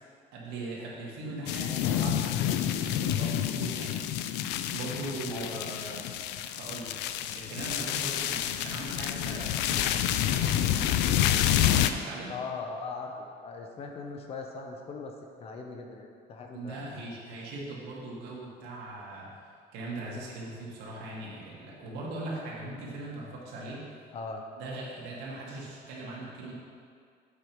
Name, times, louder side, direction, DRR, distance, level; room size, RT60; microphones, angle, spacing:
voice 1, 0.3-6.1 6.6-6.9 7.3-10.9 11.9-12.3 16.5-19.4 19.7-23.9 24.6-26.5, right 2 dB, 75° right, -4 dB, 2.0 m, -40 dB
sound 1, 1.5-11.9, left 11 dB, 90° left, 0.4 m, -28 dB
voice 2, 5.3-5.9 12.3-15.1 15.4-16.8 24.1-24.4, left 4 dB, 35° left, 3 dB, 0.7 m, -39 dB
8.1 x 5.4 x 4.6 m, 2.2 s
cardioid pair, 170°, 17 cm